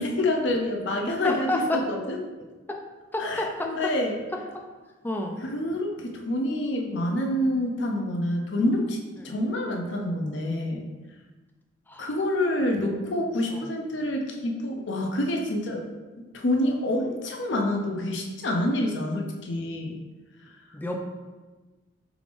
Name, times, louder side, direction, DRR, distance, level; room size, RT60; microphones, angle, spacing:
voice 1, 0.0-2.2 3.2-4.1 5.4-9.0 9.2-10.9 12.0-15.8 16.3-20.0, left 1 dB, 70° left, 2 dB, 0.6 m, -27 dB
voice 2, 1.1-1.8 2.7-2.8 3.1-3.9 4.5-4.6 5.0-5.4 9.2-9.3 11.9-12.1 13.5-13.7 20.7-21.0, left 1 dB, 10° left, 2 dB, 0.4 m, -30 dB
4.8 x 3.4 x 2.5 m, 1.3 s
head